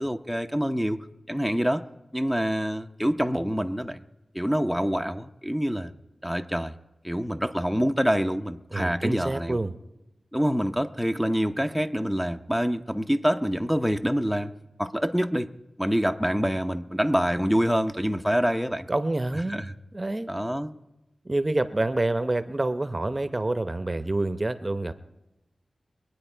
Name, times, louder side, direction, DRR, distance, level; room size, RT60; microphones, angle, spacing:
voice 1, 0.0-1.8 2.1-4.0 4.3-5.9 6.2-6.7 7.0-9.6 10.3-14.5 14.8-15.5 15.8-18.9 19.5-19.7 20.3-20.7, equal, ahead, 8 dB, 0.8 m, -26 dB
voice 2, 8.7-9.7 18.9-19.6 19.9-20.3 21.2-24.9, right 2 dB, 30° right, 11 dB, 0.8 m, -27 dB
23.5 x 9.2 x 4.5 m, 0.94 s
cardioid pair, 45°, 0 cm